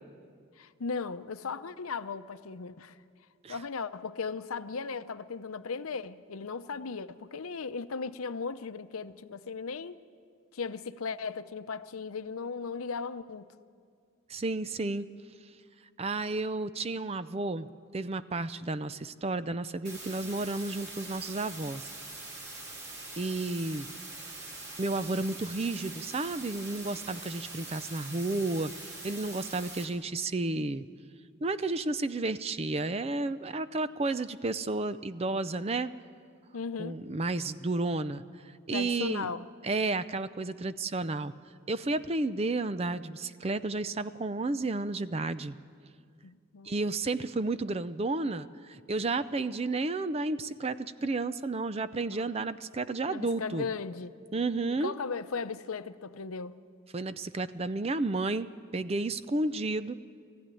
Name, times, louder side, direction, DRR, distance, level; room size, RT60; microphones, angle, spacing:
voice 1, 0.6-3.0 3.5-10.0 10.5-13.5 36.5-37.0 38.7-39.5 46.2-46.7 52.1-52.3 53.1-54.1 54.8-56.6, left 5 dB, 85° left, 0.7 m, -37 dB
voice 2, 14.3-15.1 16.0-17.7 17.9-21.9 23.2-23.9 24.8-28.7 29.0-30.9 31.4-35.9 36.8-38.2 38.7-39.3 39.6-41.3 41.7-45.6 46.6-53.7 54.3-54.9 56.9-60.0, right 2 dB, 30° right, 0.5 m, -32 dB
sound 1, 19.8-29.8, right 2 dB, 50° right, 3.5 m, -43 dB
19.5 x 15.0 x 9.9 m
head